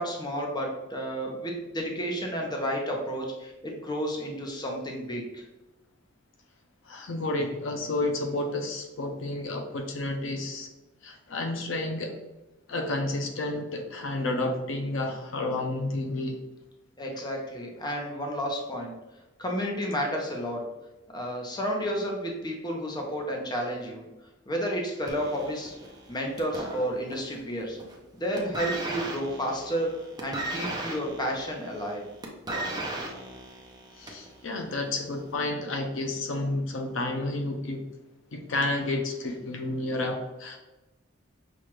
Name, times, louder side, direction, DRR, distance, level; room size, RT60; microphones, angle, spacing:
voice 1, 0.0-5.4 17.0-18.9 19.4-20.6 21.1-24.0 24.5-25.7 26.1-27.8 28.1-32.0, equal, 20° left, 1 dB, 0.7 m, -31 dB
voice 2, 6.8-10.7 11.0-12.2 12.7-16.4 33.9-37.8 38.3-40.6, left 2 dB, 70° left, 4 dB, 0.5 m, -31 dB
sound 1, 25.1-27.4 27.7-28.1 28.4-34.3 35.1-35.2, right 1 dB, 20° right, 0.7 m, -36 dB
5.8 x 2.4 x 3.1 m, 1.0 s
head